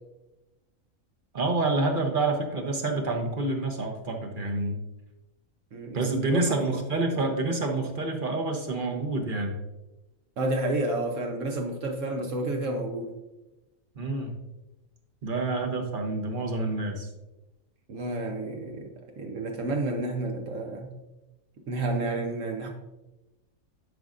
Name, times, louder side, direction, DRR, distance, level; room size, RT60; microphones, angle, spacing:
voice 1, 1.3-4.8 5.9-9.6 14.0-14.4 15.2-17.1, right 2 dB, 45° right, 3 dB, 1.0 m, -28 dB
voice 2, 6.3-6.7 10.4-13.1 17.9-18.9 19.2-20.9 21.7-22.7, right 2 dB, 70° right, 1 dB, 1.2 m, -30 dB
11.5 x 5.1 x 2.5 m, 1.0 s
omnidirectional pair, 1.4 m